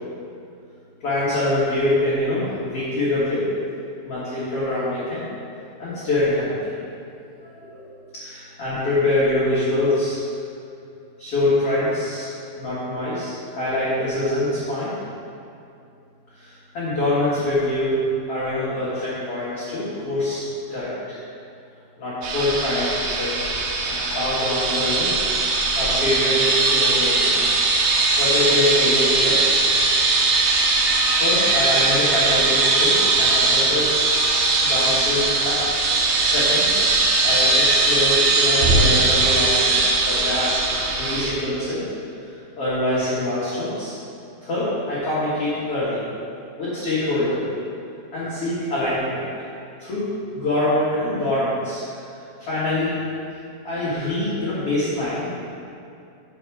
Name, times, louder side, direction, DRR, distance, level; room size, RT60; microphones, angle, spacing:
voice 1, 1.0-3.4 4.0-5.2 5.8-6.6 7.4-10.2 11.2-12.3 12.6-14.9 16.4-17.9 18.3-20.4 20.7-21.2 22.0-23.4 23.8-27.3 28.2-29.6 31.2-34.0 34.6-35.6 36.2-40.6 41.0-41.8 42.2-42.3 42.6-44.0 44.4-46.0 46.6-47.4 48.1-49.2 49.8-50.0 50.3-51.8 52.4-52.9 53.6-55.3, left 1 dB, 70° left, -11 dB, 1.4 m, -24 dB
sound 1, 22.2-41.3, right 3 dB, 75° right, 2.8 m, -20 dB
7.6 x 4.8 x 5.9 m, 2.6 s
omnidirectional pair, 5.4 m